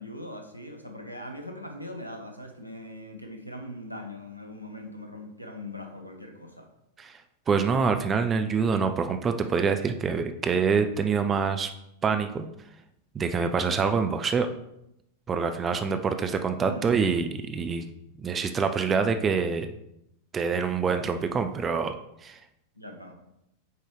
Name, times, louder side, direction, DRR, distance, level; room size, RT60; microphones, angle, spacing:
voice 1, 0.0-6.7 16.6-16.9 22.7-23.2, left 1 dB, 90° right, 3 dB, 0.9 m, -40 dB
voice 2, 7.5-11.7 12.0-12.5 13.1-14.5 15.3-17.8 18.2-19.7 20.3-22.0 22.2-22.4, right 5 dB, 20° right, 7 dB, 0.5 m, -26 dB
7.9 x 4.6 x 3.3 m, 0.81 s
figure-of-eight pair, 90°, 0 cm